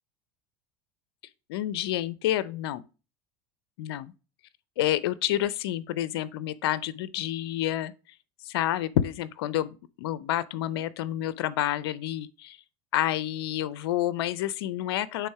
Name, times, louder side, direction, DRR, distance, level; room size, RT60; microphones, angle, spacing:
voice 1, 1.5-2.9 3.8-4.1 4.8-7.9 8.4-12.6 12.9-15.3, left 13 dB, 85° left, 0.5 m, -29 dB
8.3 x 3.6 x 4.7 m
supercardioid pair, 105°, 13 cm